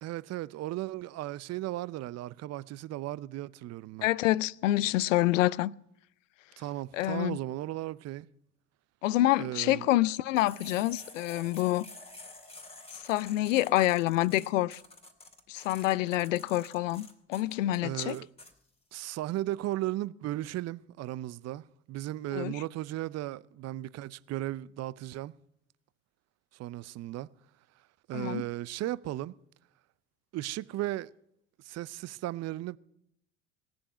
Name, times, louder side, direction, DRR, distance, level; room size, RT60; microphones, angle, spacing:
voice 1, 0.0-4.1 6.6-8.3 9.4-9.9 17.8-18.3 18.9-25.3 26.5-27.3 28.1-29.4 30.3-31.1 31.6-32.8, right 15 dB, 45° right, 0.6 m, -36 dB
voice 2, 4.0-5.7 6.9-7.4 9.0-11.9 12.9-14.8 15.5-18.2 22.3-22.5 28.1-28.4, left 16 dB, 80° left, 0.6 m, -27 dB
sound 1, 10.4-18.5, left 2 dB, 15° left, 2.9 m, -49 dB
18.5 x 7.0 x 8.8 m
hypercardioid pair, 70°, 38 cm